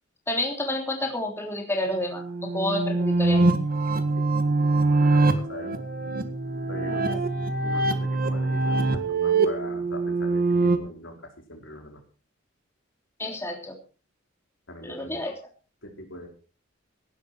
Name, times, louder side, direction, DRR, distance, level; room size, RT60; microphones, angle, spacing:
voice 1, 0.3-2.2 2.5-3.4 6.9-7.2 13.2-13.8 14.8-15.3, left 1 dB, 15° left, 2 dB, 3.2 m, -29 dB
sound 1, 1.9-10.8, right 3 dB, 45° right, 1.8 m, -24 dB
voice 2, 4.7-5.8 6.7-7.2 7.6-12.0 14.7-15.2 15.8-16.3, left 1 dB, 70° left, 3 dB, 4.7 m, -41 dB
17.5 x 12.0 x 4.6 m, 0.35 s
head